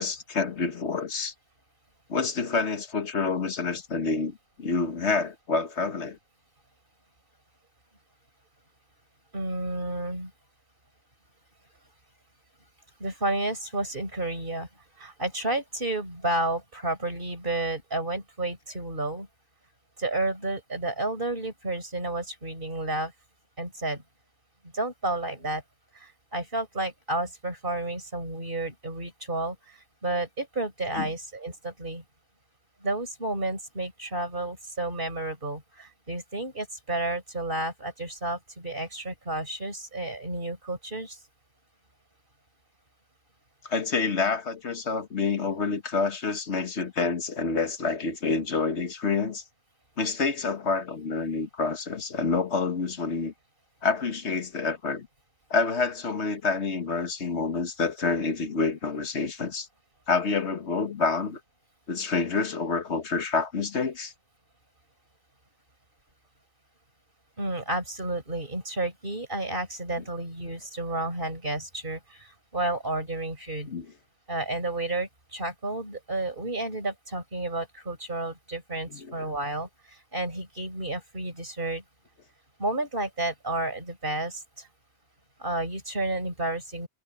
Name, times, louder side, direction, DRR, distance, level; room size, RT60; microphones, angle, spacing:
voice 1, 0.0-1.3 2.1-6.2 31.0-31.1 43.6-49.4 50.0-53.3 53.8-55.1 55.5-59.7 60.1-61.4 61.9-64.1 73.7-73.9 78.9-79.3, left 4 dB, 90° left, 1.7 m, -28 dB
voice 2, 9.3-10.3 13.0-14.7 15.0-19.3 20.0-23.1 23.6-24.0 24.7-25.6 25.9-32.0 32.8-41.2 67.4-73.7 74.3-81.8 82.6-84.7 85.4-86.9, right 2 dB, 55° right, 5.5 m, -31 dB
omnidirectional pair, 1.1 m